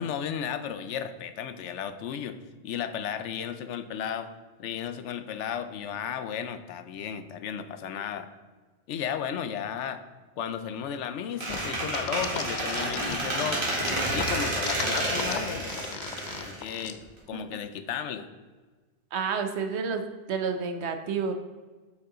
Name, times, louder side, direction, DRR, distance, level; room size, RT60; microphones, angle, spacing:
voice 1, 0.0-2.4 2.6-4.3 4.6-8.3 8.9-10.0 10.4-13.7 14.1-16.2 16.4-17.0 17.3-18.3, left 8 dB, 85° left, 10 dB, 0.9 m, -34 dB
Squeak, 11.4-17.2, right 1 dB, 50° right, 2.1 m, -30 dB
sound 1, 11.5-13.4 13.8-16.9, left 7 dB, 50° left, 0.6 m, -36 dB
voice 2, 19.1-20.0 20.3-21.3, right 5 dB, 70° right, 7 dB, 1.0 m, -29 dB
8.1 x 5.5 x 3.8 m, 1.3 s
omnidirectional pair, 1.2 m